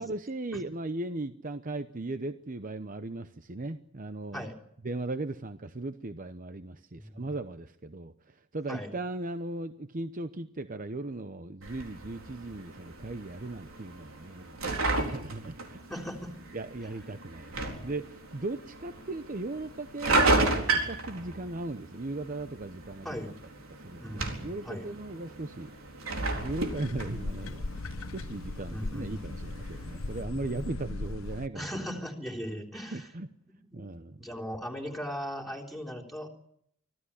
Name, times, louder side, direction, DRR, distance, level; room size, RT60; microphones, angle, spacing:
voice 1, 0.0-4.5 4.8-14.6 15.0-15.8 16.5-17.5 17.8-23.3 23.7-25.7 26.2-27.8 28.1-31.7 32.9-33.3 33.7-34.3, right 2 dB, 40° right, 10 dB, 0.8 m, -37 dB
voice 2, 7.0-7.3 8.7-8.9 15.9-16.4 23.0-23.3 24.0-24.8 28.7-29.2 31.5-33.1 33.7-33.9 34.2-36.3, equal, ahead, 0 dB, 3.6 m, -38 dB
sound 1, 11.6-30.2, right 2 dB, 90° right, 4.2 m, -34 dB
sound 2, 26.4-31.5, left 2 dB, 85° left, 0.9 m, -38 dB
25.0 x 15.5 x 10.0 m, 0.73 s
head